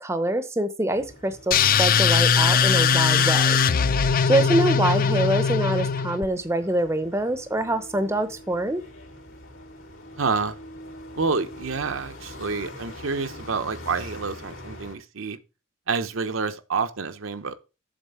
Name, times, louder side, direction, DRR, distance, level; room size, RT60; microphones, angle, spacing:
voice 1, 0.0-3.6 4.3-8.8, right 1 dB, 10° right, 0.7 m, -25 dB
sound 1, 0.9-14.9, left 1 dB, 75° left, 2.7 m, -44 dB
sound 2, 1.5-6.3, left 6 dB, 40° left, 0.4 m, -20 dB
voice 2, 10.2-10.6 11.2-15.4 15.9-17.6, right 4 dB, 70° right, 0.8 m, -28 dB
7.5 x 4.3 x 6.8 m
head